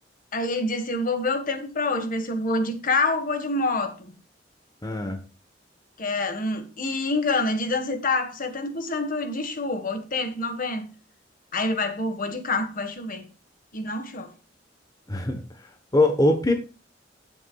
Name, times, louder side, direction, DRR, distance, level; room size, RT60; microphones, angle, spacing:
voice 1, 0.3-4.1 6.0-10.9 11.5-13.3 13.7-14.3, left 2 dB, 50° left, 1.6 m, -27 dB
voice 2, 4.8-5.2 15.1-16.5, left 2 dB, 20° left, 1.1 m, -23 dB
16.0 x 7.1 x 2.3 m
head